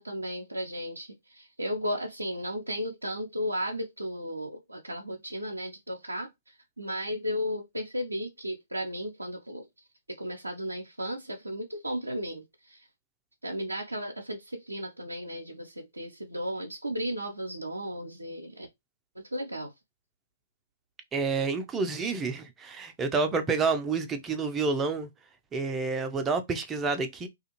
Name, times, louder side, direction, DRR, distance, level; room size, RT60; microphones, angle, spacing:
voice 1, 0.0-9.7 10.1-12.9 13.4-18.7 19.2-19.7, equal, 90° right, 0.5 m, -35 dB
voice 2, 21.1-25.1 25.5-27.3, right 4 dB, 15° right, 0.5 m, -29 dB
2.4 x 2.4 x 2.9 m
figure-of-eight pair, 120°, 0 cm